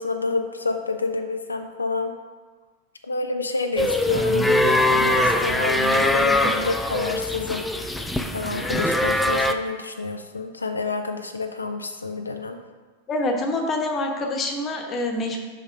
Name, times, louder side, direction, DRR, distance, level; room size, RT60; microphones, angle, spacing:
voice 1, 0.0-2.1 3.0-8.0 8.3-12.6, left 3 dB, 80° left, 6 dB, 0.4 m, -28 dB
sound 1, 3.8-9.5, left 1 dB, 5° left, 0.4 m, -22 dB
voice 2, 13.1-15.5, left 2 dB, 25° left, 3 dB, 1.1 m, -26 dB
5.7 x 5.2 x 4.9 m, 1.4 s
figure-of-eight pair, 90°, 0 cm